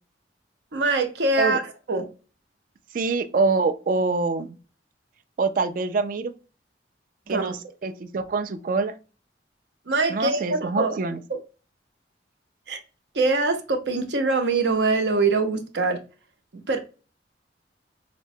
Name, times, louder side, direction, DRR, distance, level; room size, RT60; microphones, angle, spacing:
voice 1, 0.7-1.6 1.9-2.1 7.3-7.5 9.9-11.0 11.3-11.4 12.7-12.8 13.1-16.0 16.5-16.8, right 3 dB, 75° right, 0.7 m, -23 dB
voice 2, 2.9-4.6 5.4-6.3 7.3-8.9 10.1-11.2, right 3 dB, 45° right, 0.3 m, -25 dB
5.0 x 2.1 x 2.6 m
head